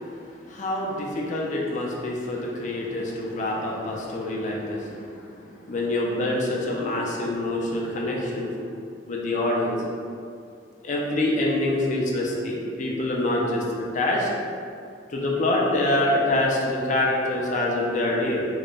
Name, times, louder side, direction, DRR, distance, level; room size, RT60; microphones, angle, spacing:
voice 1, 0.5-4.9 5.7-8.6 9.1-9.8 10.8-13.6 13.9-14.3 15.1-18.5, left 1 dB, 40° left, -2 dB, 0.5 m, -25 dB
3.8 x 2.2 x 3.7 m, 2.4 s
head